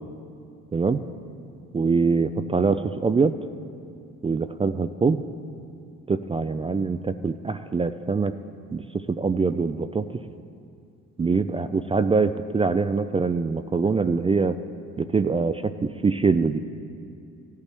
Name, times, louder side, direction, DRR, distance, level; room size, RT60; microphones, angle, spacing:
voice 1, 0.7-1.0 1.7-3.3 4.2-5.2 6.1-8.3 8.7-8.8 9.1-10.0 11.2-14.5 15.0-16.6, right 4 dB, 20° right, 10 dB, 0.3 m, -23 dB
16.5 x 11.5 x 3.4 m, 2.5 s
cardioid pair, 90°, 30 cm